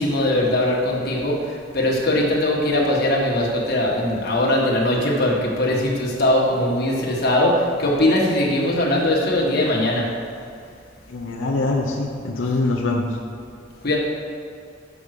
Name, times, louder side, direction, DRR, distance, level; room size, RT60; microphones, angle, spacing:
voice 1, 0.0-10.0 13.8-14.0, left 1 dB, 55° left, -3 dB, 1.4 m, -20 dB
voice 2, 11.1-13.2, left 2 dB, 90° left, -2 dB, 0.7 m, -23 dB
6.2 x 5.4 x 6.5 m, 2.3 s
head